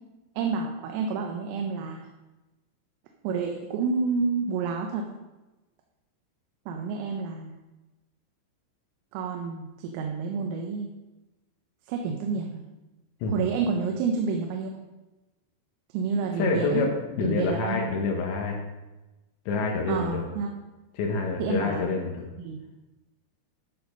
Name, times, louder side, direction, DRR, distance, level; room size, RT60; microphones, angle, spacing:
voice 1, 0.4-2.1 3.2-5.0 6.7-7.6 9.1-10.9 11.9-12.6 13.3-14.7 15.9-16.8 17.2-17.8 19.9-20.5 21.4-21.9 22.4-22.6, right 5 dB, 85° right, 2 dB, 3.4 m, -29 dB
voice 2, 16.4-18.6 19.5-20.2 20.9-22.3, left 3 dB, 75° left, 1 dB, 2.9 m, -27 dB
12.5 x 4.2 x 5.2 m, 1.1 s
omnidirectional pair, 5.8 m